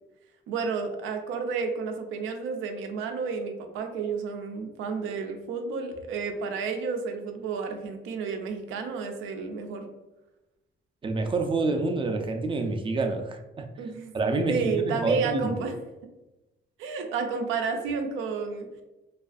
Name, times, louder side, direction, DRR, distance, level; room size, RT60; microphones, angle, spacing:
voice 1, 0.5-9.9 13.8-14.1 14.5-15.7 16.8-18.8, right 5 dB, 85° right, 5 dB, 0.4 m, -31 dB
voice 2, 11.0-13.6 14.1-15.6, right 3 dB, 25° right, 5 dB, 0.4 m, -27 dB
2.5 x 2.3 x 2.3 m, 1.0 s
cardioid pair, 90°, 20 cm